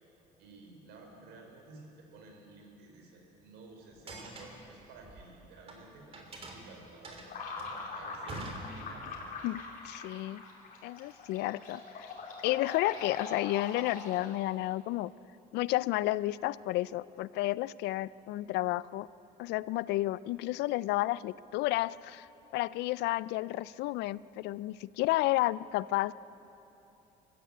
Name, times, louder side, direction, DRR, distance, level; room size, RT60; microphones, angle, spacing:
voice 1, 0.4-9.3, right 3 dB, 90° right, 2 dB, 4.1 m, -53 dB
sound 1, 3.9-5.8 6.1-9.2, right 2 dB, 35° right, 3.4 m, -45 dB
sound 2, 7.3-14.5, left 4 dB, 55° left, 3.9 m, -42 dB
voice 2, 9.9-10.4 10.8-12.1 12.4-15.1 15.5-19.1 19.4-22.3 22.5-26.1, left 17 dB, 85° left, 19 dB, 0.4 m, -31 dB
23.0 x 14.0 x 8.5 m, 3.0 s
cardioid pair, 110°, 17 cm